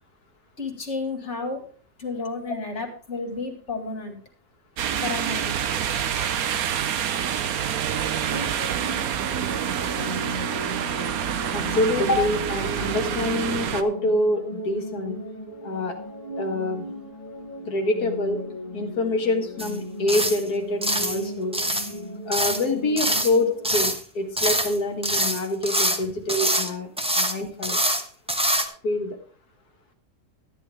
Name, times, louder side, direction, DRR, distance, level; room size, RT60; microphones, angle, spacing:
voice 1, 0.6-1.6 2.0-4.2 5.0-5.6 26.0-26.1, left 3 dB, 40° left, 4 dB, 2.4 m, -31 dB
sound 1, 4.8-13.8, right 9 dB, 65° right, 1.2 m, -27 dB
sound 2, 7.5-23.8, left 1 dB, 25° left, 1.6 m, -37 dB
voice 2, 11.5-15.2 15.6-16.0 16.4-16.8 17.7-18.4 18.7-21.6 22.3-26.9 27.2-27.8 28.8-29.2, left 2 dB, 65° left, 4 dB, 2.2 m, -26 dB
sound 3, 19.6-19.8 20.1-20.4 20.8-21.2 21.5-21.9 22.3-22.6 23.0-23.3 23.6-24.0 24.4-24.8 25.0-26.0 26.3-26.7 27.0-27.3 27.6-28.0 28.3-28.6, right 1 dB, 5° right, 0.8 m, -24 dB
13.0 x 10.5 x 3.5 m, 0.44 s
omnidirectional pair, 1.8 m